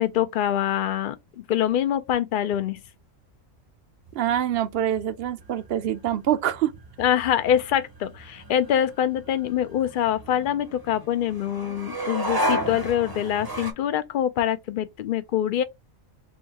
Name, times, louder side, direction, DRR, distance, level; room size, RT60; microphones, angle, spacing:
voice 1, 0.0-2.8 7.0-15.6, left 10 dB, 60° left, 0.6 m, -25 dB
sound 1, 4.1-13.7, right 1 dB, 25° right, 0.6 m, -34 dB
voice 2, 4.2-6.7, right 11 dB, 60° right, 0.7 m, -25 dB
3.9 x 2.6 x 3.5 m
omnidirectional pair, 1.3 m